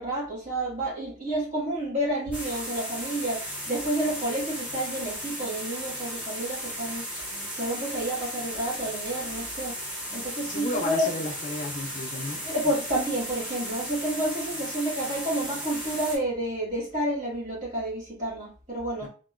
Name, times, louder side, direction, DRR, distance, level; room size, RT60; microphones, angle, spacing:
voice 1, 0.0-7.0 7.5-9.8 10.1-11.1 12.1-19.1, right 1 dB, 35° right, -5 dB, 1.3 m, -30 dB
sound 1, 2.3-16.2, equal, 5° right, 0.7 m, -35 dB
voice 2, 10.4-12.4 19.0-19.1, left 2 dB, 35° left, 2 dB, 0.3 m, -33 dB
2.8 x 2.2 x 2.2 m, 0.38 s
head